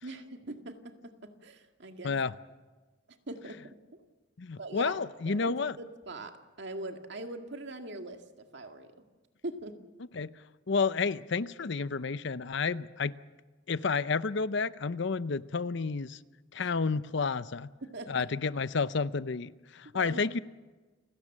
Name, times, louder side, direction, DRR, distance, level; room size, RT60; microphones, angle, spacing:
voice 1, 0.0-2.1 3.3-3.6 3.9-4.0 4.6-5.0 5.3-8.9 9.4-9.8 16.6-16.7 17.8-18.3 19.9-20.2, right 2 dB, 60° right, 5 dB, 2.1 m, -42 dB
voice 2, 4.4-5.7 10.1-10.3 10.7-13.1 13.7-16.2 16.5-17.7 18.1-20.4, left 4 dB, 60° left, 15 dB, 0.6 m, -30 dB
29.5 x 17.5 x 7.4 m, 1.3 s
head